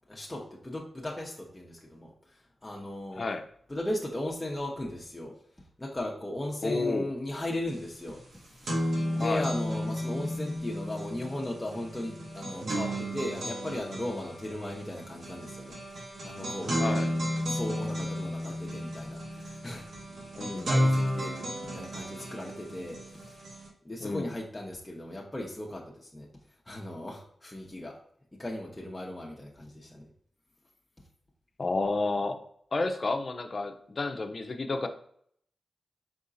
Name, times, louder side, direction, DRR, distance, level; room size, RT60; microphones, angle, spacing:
voice 1, 0.1-3.3 3.7-5.3 5.8-8.2 8.6-8.9 9.1-16.8 17.4-19.9 20.5-23.0 23.3-23.4 23.8-26.3 26.7-28.0 28.3-30.1, left 1 dB, 20° left, -3 dB, 0.9 m, -37 dB
voice 2, 6.6-7.1 9.2-9.4 16.8-17.1 20.3-20.7 24.0-24.3 31.6-32.4 32.7-34.9, left 3 dB, 50° left, 6 dB, 0.6 m, -31 dB
sound 1, 7.7-7.8 8.1-23.7, equal, 80° right, 1.4 m, -33 dB
4.9 x 3.6 x 2.6 m, 0.65 s
cardioid pair, 55°, 0 cm